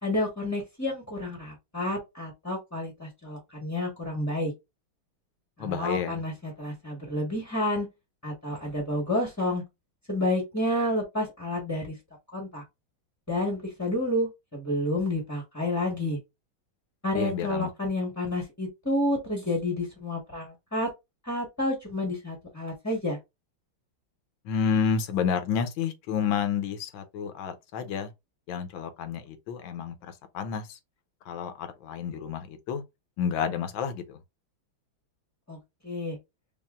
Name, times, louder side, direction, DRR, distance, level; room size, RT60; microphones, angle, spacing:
voice 1, 0.0-4.5 5.6-7.9 8.2-9.6 10.1-12.0 12.3-12.6 13.3-16.2 17.0-20.9 21.2-23.2 35.5-35.6 35.8-36.2, left 1 dB, 10° left, 0.8 m, -30 dB
voice 2, 5.6-6.2 17.1-17.7 24.4-28.1 28.5-30.8 31.2-32.8 33.2-34.2, left 7 dB, 75° left, 1.4 m, -30 dB
5.4 x 2.5 x 2.4 m
omnidirectional pair, 2.3 m